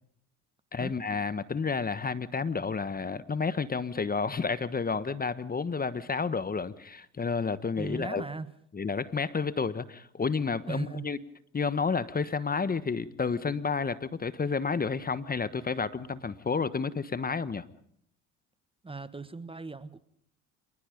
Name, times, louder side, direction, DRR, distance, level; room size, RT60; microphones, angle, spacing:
voice 1, 0.7-8.2 8.7-11.2 11.5-17.6, left 5 dB, 25° left, 14 dB, 1.3 m, -30 dB
voice 2, 7.8-8.5 10.7-11.2 18.8-20.0, right 3 dB, 15° right, 14 dB, 1.3 m, -38 dB
27.5 x 20.0 x 5.3 m, 0.66 s
hypercardioid pair, 70°, 35 cm